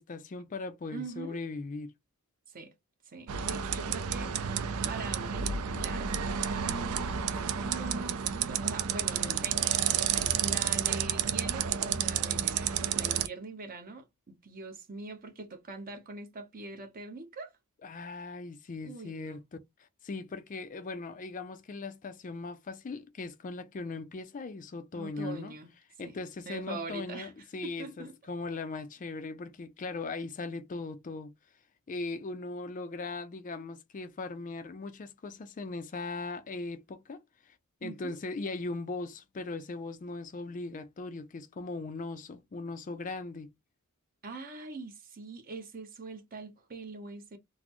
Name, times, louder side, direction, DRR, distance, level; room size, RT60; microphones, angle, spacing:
voice 1, 0.0-1.9 9.2-9.4 17.8-25.5 26.0-31.3 31.9-37.2 37.5-37.6 37.8-43.5, left 3 dB, 35° left, 0.4 m, -39 dB
voice 2, 0.9-1.4 2.5-2.7 3.0-7.3 7.6-17.5 18.8-19.4 24.9-25.7 26.0-26.2 26.5-27.3 27.6-28.2 37.8-38.2 44.2-47.4, right 3 dB, 40° right, 0.8 m, -43 dB
sound 1, 3.3-13.3, right 8 dB, 70° right, 0.4 m, -31 dB
3.9 x 2.0 x 2.9 m
head